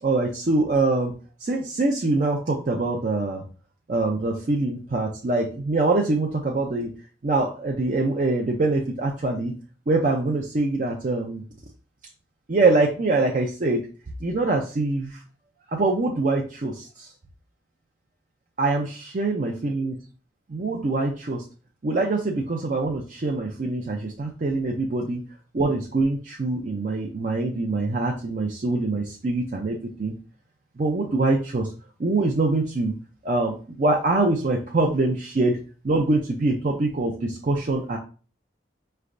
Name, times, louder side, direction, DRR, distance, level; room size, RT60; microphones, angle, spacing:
voice 1, 0.0-1.1 1.4-3.4 3.9-6.9 7.2-9.5 9.9-11.4 12.5-13.8 14.2-15.2 15.7-17.1 18.6-20.0 20.5-21.4 21.8-25.2 25.5-30.1 30.8-31.7 32.0-32.9 33.2-35.6 35.8-38.0, right 2 dB, 45° right, 0 dB, 0.4 m, -24 dB
4.9 x 3.3 x 2.5 m, 0.37 s
head